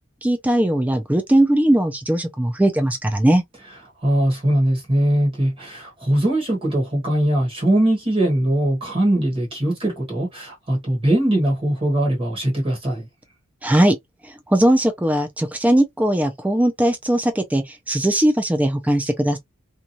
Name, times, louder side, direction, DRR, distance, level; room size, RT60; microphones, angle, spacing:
voice 1, 0.2-3.4 13.6-14.0 14.2-19.4, right 1 dB, 5° right, 0.3 m, -19 dB
voice 2, 4.0-13.1, right 1 dB, 25° right, 1.2 m, -21 dB
2.9 x 2.3 x 2.6 m
head